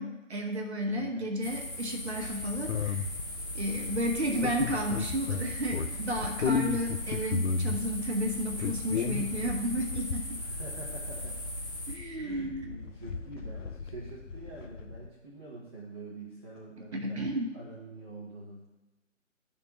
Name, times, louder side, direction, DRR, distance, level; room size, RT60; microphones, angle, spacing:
voice 1, 0.0-3.1 3.5-10.4 11.9-12.6 16.9-17.5, equal, 55° right, 2 dB, 0.9 m, -32 dB
voice 2, 0.9-1.3 10.4-11.4 12.2-17.3 17.5-18.6, right 2 dB, 20° right, -8 dB, 0.7 m, -45 dB
sound 1, 1.4-11.9, equal, 15° left, 0.6 m, -39 dB
sound 2, 2.2-15.1, left 5 dB, 70° left, 0.5 m, -35 dB
10.5 x 3.6 x 2.9 m, 1.1 s
figure-of-eight pair, 145°, 39 cm